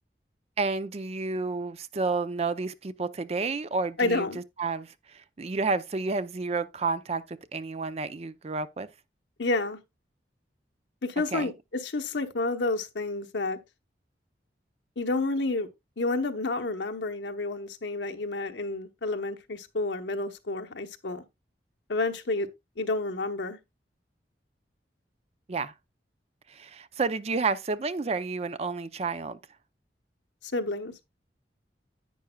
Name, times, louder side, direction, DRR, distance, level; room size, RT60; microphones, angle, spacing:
voice 1, 0.6-8.9 11.3-11.5 25.5-25.7 26.5-29.4, right 4 dB, 35° right, 0.5 m, -30 dB
voice 2, 4.0-4.4 9.4-9.8 11.0-13.6 15.0-15.7 16.0-21.2 21.9-22.5 22.8-23.6 30.4-30.9, left 2 dB, 85° left, 1.0 m, -30 dB
10.5 x 8.8 x 2.3 m
head